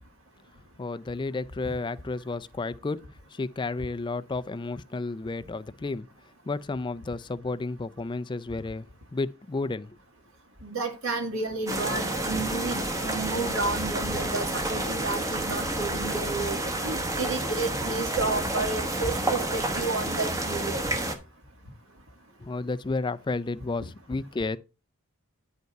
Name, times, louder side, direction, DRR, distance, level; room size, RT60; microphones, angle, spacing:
voice 1, 0.8-6.1 6.5-8.9 9.1-9.9 22.4-24.6, left 3 dB, 20° left, 0.3 m, -32 dB
voice 2, 10.6-20.8, right 3 dB, 60° right, 2.2 m, -31 dB
sound 1, 11.7-21.1, right 1 dB, 15° right, 1.0 m, -30 dB
9.2 x 5.3 x 4.6 m
head